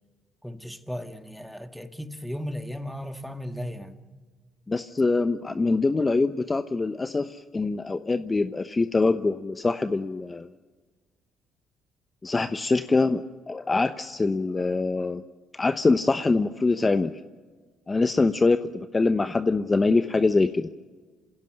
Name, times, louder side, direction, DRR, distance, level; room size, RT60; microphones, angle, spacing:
voice 1, 0.4-4.0, equal, ahead, 2.0 m, -36 dB
voice 2, 4.7-10.5 12.2-15.2 15.6-17.1 17.9-20.7, left 3 dB, 25° left, 0.9 m, -24 dB
27.5 x 16.5 x 7.9 m
hypercardioid pair, 60°, 0 cm